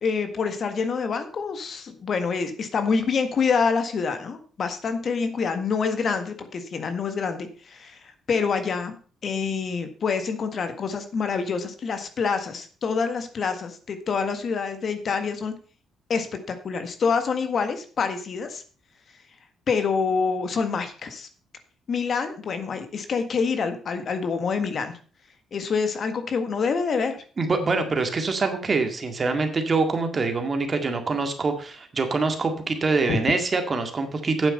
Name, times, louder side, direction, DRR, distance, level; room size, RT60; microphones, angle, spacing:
voice 1, 0.0-8.0 8.3-9.0 9.2-15.5 16.1-18.6 19.7-21.3 21.9-24.9 25.5-27.2 33.1-33.2, left 5 dB, 55° left, 8 dB, 1.6 m, -26 dB
voice 2, 27.4-34.5, right 3 dB, 35° right, 6 dB, 2.0 m, -24 dB
9.0 x 7.7 x 5.5 m, 0.40 s
cardioid pair, 90°, 0 cm